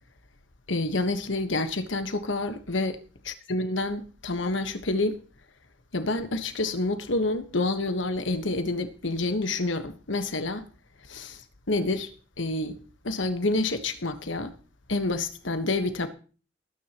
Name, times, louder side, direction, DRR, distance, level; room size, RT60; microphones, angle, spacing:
voice 1, 0.7-3.0 3.2-5.2 5.9-10.6 11.1-11.4 11.7-12.1 12.4-12.8 13.0-14.5 14.9-16.1, left 2 dB, 85° left, 1.4 m, -28 dB
19.5 x 9.7 x 3.0 m
head